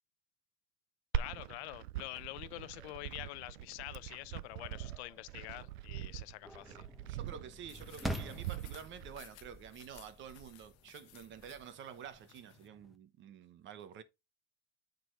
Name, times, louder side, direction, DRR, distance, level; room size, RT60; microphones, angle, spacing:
voice 1, 1.1-6.9, left 19 dB, 85° left, 0.7 m, -46 dB
Glass, 1.1-9.1, right 12 dB, 85° right, 0.6 m, -42 dB
sound 1, 2.1-13.0, equal, ahead, 0.9 m, -49 dB
voice 2, 7.1-14.0, right 8 dB, 35° right, 1.1 m, -49 dB
sound 2, 7.7-12.7, left 15 dB, 50° left, 1.0 m, -60 dB
9.1 x 4.1 x 4.6 m
supercardioid pair, 145°, 32 cm